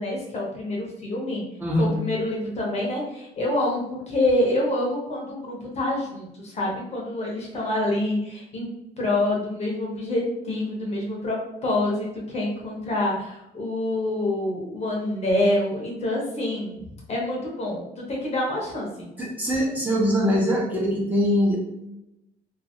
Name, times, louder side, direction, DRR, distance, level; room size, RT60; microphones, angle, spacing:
voice 1, 0.0-1.4 1.8-8.7 9.0-19.1, left 1 dB, 40° left, -3 dB, 1.0 m, -27 dB
voice 2, 1.6-1.9 19.2-21.6, equal, 10° right, -5 dB, 1.1 m, -22 dB
2.7 x 2.7 x 2.7 m, 0.89 s
cardioid pair, 110°, 17 cm